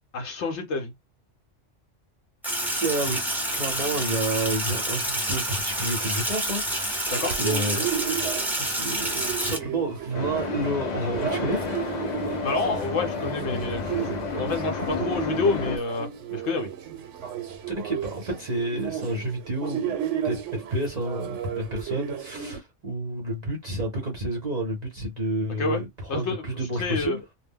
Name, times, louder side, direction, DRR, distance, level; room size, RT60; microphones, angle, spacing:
voice 1, 0.1-0.9 7.1-7.3 12.4-16.7 25.6-25.8 26.1-26.4 26.7-27.2, left 3 dB, 70° left, 0.9 m, -28 dB
Sink (filling or washing), 2.4-9.6, right 1 dB, ahead, 0.7 m, -28 dB
voice 2, 2.8-7.9 8.6-12.1 17.8-19.9 20.2-27.2, right 1 dB, 40° right, 0.8 m, -30 dB
sound 1, 7.1-22.6, right 9 dB, 75° right, 0.9 m, -34 dB
sound 2, 10.1-15.8, left 4 dB, 55° left, 0.5 m, -31 dB
2.2 x 2.1 x 3.5 m
omnidirectional pair, 1.3 m